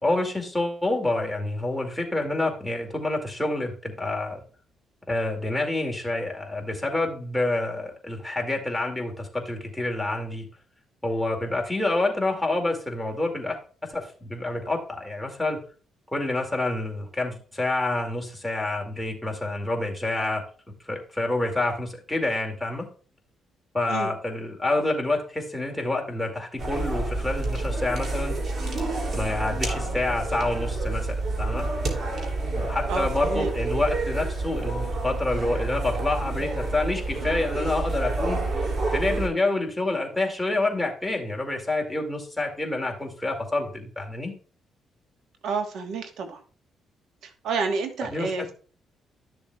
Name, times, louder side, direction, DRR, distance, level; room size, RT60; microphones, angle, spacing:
voice 1, 0.0-4.4 5.1-10.5 11.0-13.6 13.9-15.6 16.1-20.4 20.9-22.9 23.7-28.3 29.1-31.7 32.6-38.4 38.9-44.3 48.1-48.3, left 2 dB, 5° left, 0 dB, 2.3 m, -28 dB
sound 1, 26.6-39.3, right 2 dB, 50° right, 2.8 m, -28 dB
voice 2, 32.9-33.5 45.4-46.4 47.2-48.5, right 4 dB, 75° right, 5 dB, 1.3 m, -29 dB
12.5 x 6.9 x 2.3 m, 0.40 s
cardioid pair, 90°, 0 cm